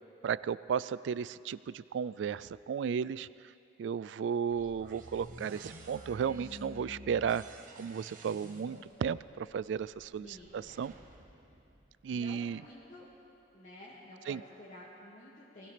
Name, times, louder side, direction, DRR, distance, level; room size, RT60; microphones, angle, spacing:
voice 1, 0.2-3.3 3.8-7.4 7.8-10.3 10.5-10.9 12.0-12.6 14.3-14.4, right 7 dB, 75° right, 18 dB, 0.3 m, -34 dB
sound 1, 4.5-12.4, right 1 dB, 50° right, 1.2 m, -51 dB
voice 2, 10.2-10.6 12.1-13.1 13.5-15.7, left 1 dB, 45° left, -8 dB, 1.9 m, -51 dB
20.0 x 16.0 x 3.3 m, 2.6 s
head